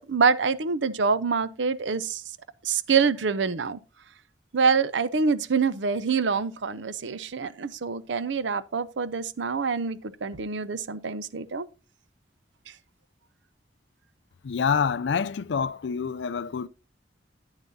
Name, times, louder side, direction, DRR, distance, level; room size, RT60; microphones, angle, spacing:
voice 1, 0.1-2.2 2.6-3.8 4.5-11.7, right 5 dB, 80° right, 0.6 m, -26 dB
voice 2, 14.4-16.7, left 6 dB, 70° left, 0.4 m, -27 dB
10.5 x 8.8 x 2.7 m
head